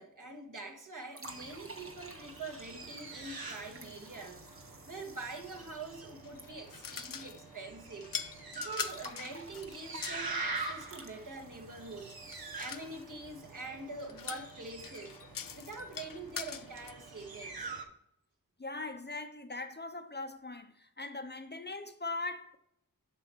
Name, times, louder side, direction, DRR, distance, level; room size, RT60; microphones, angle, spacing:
voice 1, 0.0-8.1 8.5-15.2 15.5-17.7, right 2 dB, 60° right, 1.7 m, -45 dB
sound 1, 1.1-7.3 7.5-7.6 8.8-13.8, right 2 dB, 40° right, 1.2 m, -53 dB
sound 2, 1.2-17.8, right 3 dB, 85° right, 1.2 m, -45 dB
sound 3, 6.2-7.5 8.0-10.3 12.3-12.9 14.0-16.9, left 7 dB, 70° left, 0.6 m, -43 dB
voice 2, 18.6-22.6, left 3 dB, 30° left, 0.7 m, -40 dB
7.9 x 5.6 x 4.5 m
wide cardioid pair, 65°, 35 cm